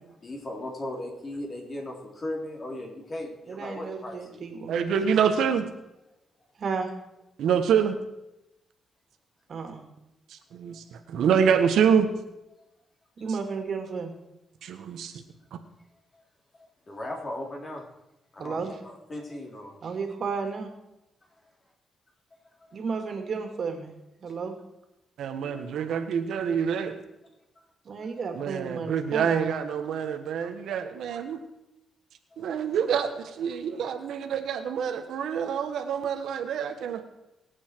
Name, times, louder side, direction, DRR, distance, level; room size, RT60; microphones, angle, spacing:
voice 1, 0.2-4.5 16.5-17.8 18.3-19.7 22.7-22.8 25.4-25.7 32.3-32.5, left 1 dB, 35° left, 0 dB, 3.8 m, -37 dB
voice 2, 3.5-4.9 6.6-6.9 9.5-9.8 13.2-14.1 18.4-18.7 19.8-20.7 22.7-23.9 24.2-24.6 27.8-29.6, right 5 dB, 50° right, 4 dB, 2.6 m, -33 dB
voice 3, 4.7-5.7 7.4-8.0 10.3-12.1 14.6-15.1 25.2-27.0 28.3-31.4 32.4-37.0, right 7 dB, 85° right, 6 dB, 1.5 m, -26 dB
23.5 x 8.4 x 4.7 m, 0.91 s
cardioid pair, 120°, 0 cm